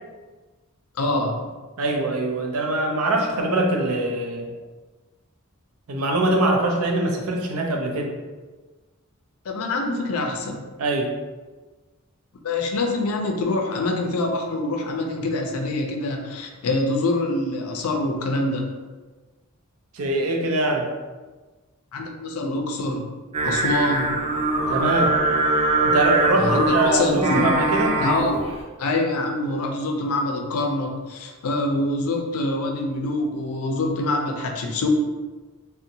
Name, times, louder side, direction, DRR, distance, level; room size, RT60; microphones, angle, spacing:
voice 1, 1.0-1.5 9.5-10.7 12.4-18.7 21.9-23.1 23.4-24.1 26.4-27.4 28.0-28.3 28.8-34.9, left 2 dB, 85° left, 3 dB, 0.4 m, -25 dB
voice 2, 1.8-4.5 5.9-8.1 10.8-11.1 19.9-20.9 24.7-25.1 25.8-28.0, right 2 dB, 85° right, 1 dB, 0.5 m, -23 dB
Singing, 23.3-28.5, right 2 dB, 30° right, 0.5 m, -22 dB
2.6 x 2.1 x 2.7 m, 1.3 s
head